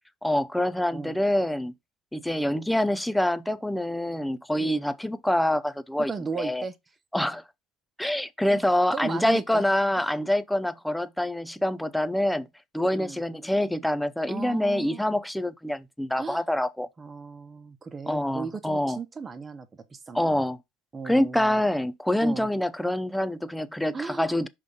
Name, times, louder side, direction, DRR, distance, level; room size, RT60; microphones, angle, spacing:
voice 1, 0.2-1.7 2.1-6.6 7.1-7.4 8.0-12.5 12.7-16.9 18.1-19.0 20.1-20.6 21.0-24.5, left 1 dB, 5° left, 0.6 m, -26 dB
voice 2, 4.6-4.9 6.1-6.8 8.5-8.6 8.9-9.6 10.0-10.1 12.9-13.2 14.3-15.0 16.2-16.4 17.0-20.4 20.9-21.6 22.2-22.5 23.9-24.4, right 5 dB, 25° right, 1.1 m, -36 dB
5.4 x 3.7 x 5.2 m
supercardioid pair, 95°, 0 cm